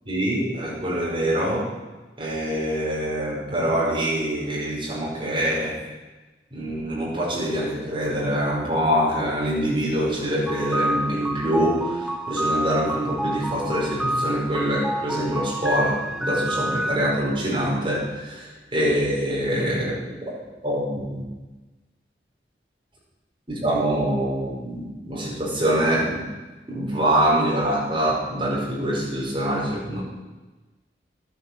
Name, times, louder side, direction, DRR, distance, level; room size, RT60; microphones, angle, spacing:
voice 1, 0.1-1.7 2.2-5.8 6.5-20.0 20.6-21.2 23.5-26.3 26.7-30.0, equal, 30° right, -5 dB, 5.3 m, -24 dB
sound 1, 10.5-17.0, right 1 dB, ahead, 0.5 m, -28 dB
12.5 x 10.0 x 7.6 m, 1.2 s
head